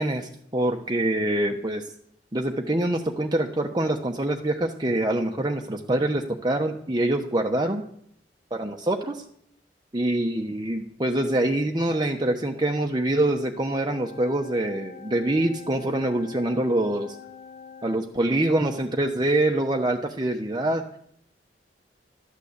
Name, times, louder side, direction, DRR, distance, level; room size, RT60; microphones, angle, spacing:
voice 1, 0.0-1.9 2.3-7.8 8.5-9.2 9.9-17.2 17.8-20.8, right 1 dB, 25° right, 2 dB, 1.0 m, -25 dB
sound 1, 13.9-18.0, left 6 dB, 45° left, 1.2 m, -45 dB
13.0 x 11.5 x 8.1 m, 0.67 s
head